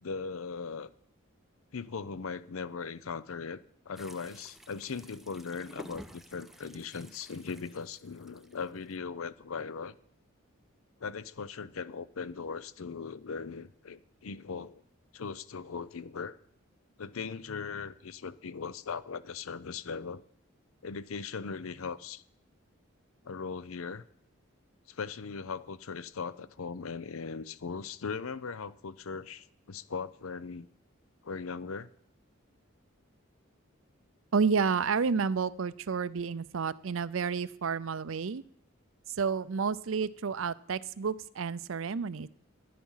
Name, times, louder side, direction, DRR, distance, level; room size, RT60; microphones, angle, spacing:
voice 1, 0.0-0.9 1.7-3.6 3.9-10.0 11.0-14.8 15.1-16.4 17.0-20.2 20.8-22.2 23.2-24.0 24.9-30.7 31.2-31.9, left 5 dB, 85° left, 0.6 m, -39 dB
sound 1, 4.0-9.0, equal, ahead, 0.5 m, -52 dB
voice 2, 34.3-38.4 39.1-42.3, right 5 dB, 75° right, 0.5 m, -30 dB
14.5 x 10.5 x 5.6 m
head